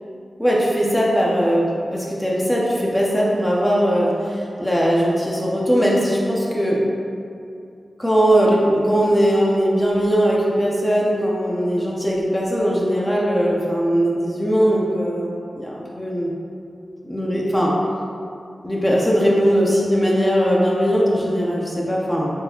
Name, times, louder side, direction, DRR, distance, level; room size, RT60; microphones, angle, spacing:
voice 1, 0.4-6.8 8.0-16.3 17.0-17.7 18.6-22.3, equal, 15° left, -4 dB, 0.6 m, -19 dB
3.7 x 2.8 x 2.7 m, 2.5 s
cardioid pair, 45°, 0 cm